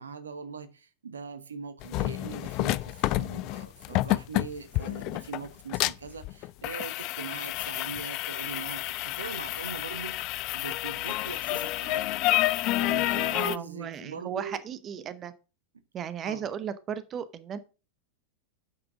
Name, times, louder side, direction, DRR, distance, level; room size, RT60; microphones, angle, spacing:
voice 1, 0.0-12.3 12.8-14.6 16.2-16.5, right 5 dB, 70° right, 1.2 m, -41 dB
sound 1, 1.8-13.6, left 18 dB, 40° left, 0.4 m, -29 dB
voice 2, 13.3-15.3 15.9-17.6, right 8 dB, 30° right, 0.9 m, -35 dB
8.9 x 6.1 x 6.2 m
figure-of-eight pair, 90°, 0 cm